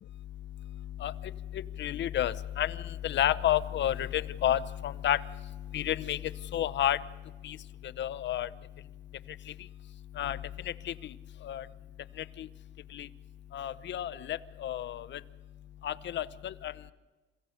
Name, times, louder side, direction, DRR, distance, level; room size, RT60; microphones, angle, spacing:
voice 1, 1.5-2.8 3.0-5.2 5.7-6.2 6.5-7.0 7.4-7.6 8.0-8.5 10.2-10.4 10.9-11.0 11.4-11.6 12.4-12.5 12.9-13.1 13.5-15.2 15.8-16.7, left 11 dB, 65° left, 14 dB, 0.8 m, -30 dB
27.0 x 16.5 x 6.6 m, 1.3 s
cardioid pair, 90°, 20 cm